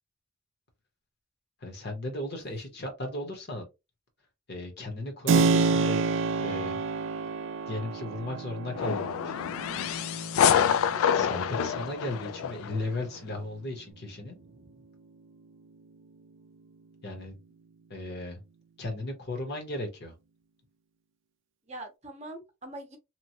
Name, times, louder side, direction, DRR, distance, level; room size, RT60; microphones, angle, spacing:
voice 1, 1.6-3.7 4.5-6.0 6.4-6.8 7.7-9.5 10.4-10.7 11.1-14.4 17.0-17.4 17.9-18.4 18.8-20.1, left 2 dB, 50° left, 1.0 m, -36 dB
Keyboard (musical), 5.3-13.8, right 4 dB, 60° right, 0.3 m, -30 dB
sound 1, 8.8-12.8, left 8 dB, 80° left, 0.3 m, -27 dB
voice 2, 14.4-14.8 21.7-23.0, right 1 dB, 30° right, 0.7 m, -43 dB
3.0 x 2.2 x 2.7 m
head